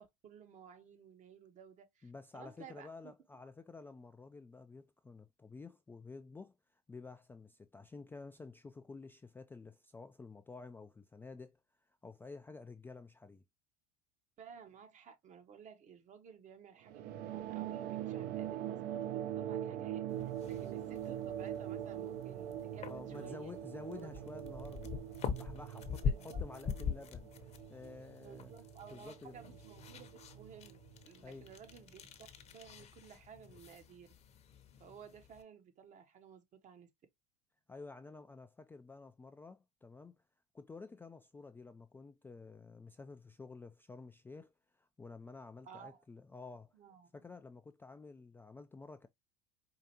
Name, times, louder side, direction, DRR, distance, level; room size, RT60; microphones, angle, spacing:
voice 1, 0.0-3.1 14.4-20.1 20.5-23.5 23.9-24.2 26.0-26.5 28.2-30.8 31.0-32.1 32.5-34.1 34.8-36.9 45.6-46.0 46.7-47.1, right 7 dB, 40° right, 0.9 m, -55 dB
voice 2, 2.0-11.6 11.9-13.4 22.9-24.9 25.3-27.3 27.7-28.5 28.9-29.6 31.2-31.5 37.7-40.2 40.5-46.7 47.1-49.1, left 4 dB, 10° left, 0.3 m, -51 dB
sound 1, 16.9-31.7, right 11 dB, 55° right, 0.6 m, -43 dB
sound 2, 20.1-35.4, left 6 dB, 35° left, 0.8 m, -44 dB
4.7 x 2.5 x 2.7 m
hypercardioid pair, 90°, 20 cm